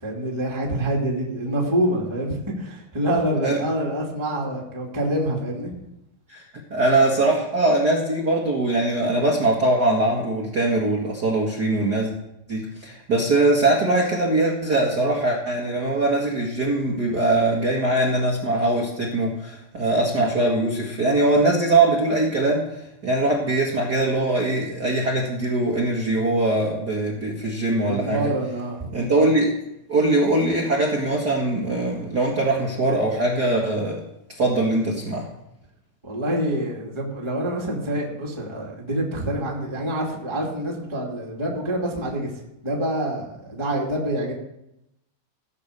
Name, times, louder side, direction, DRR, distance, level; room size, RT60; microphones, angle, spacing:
voice 1, 0.0-5.7 27.8-28.9 36.0-42.3 42.6-44.3, right 1 dB, 10° right, -3 dB, 1.9 m, -26 dB
voice 2, 6.7-12.1 12.5-28.3 28.9-29.6 29.9-34.0 34.4-35.3, right 2 dB, 35° right, -3 dB, 1.7 m, -22 dB
16.5 x 6.6 x 6.7 m, 0.85 s
omnidirectional pair, 4.2 m